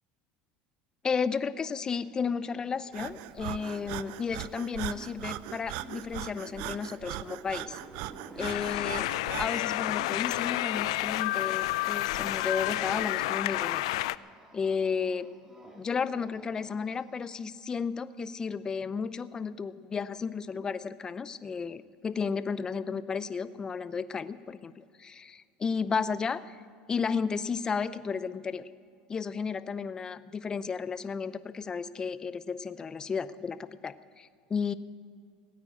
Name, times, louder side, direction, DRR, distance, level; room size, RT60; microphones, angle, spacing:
voice 1, 1.0-7.8 8.4-9.1 9.4-13.9 14.5-15.3 15.8-26.6 26.9-28.7 29.1-34.7, left 5 dB, 25° left, 14 dB, 0.6 m, -33 dB
sound 1, 1.6-10.4 10.7-17.5, right 1 dB, 15° right, 2.4 m, -54 dB
Breathing, 2.9-9.7, right 16 dB, 70° right, 0.4 m, -40 dB
sound 2, 8.4-14.2, left 17 dB, 90° left, 0.3 m, -30 dB
17.0 x 9.3 x 8.6 m, 2.1 s
supercardioid pair, 115°, 3 cm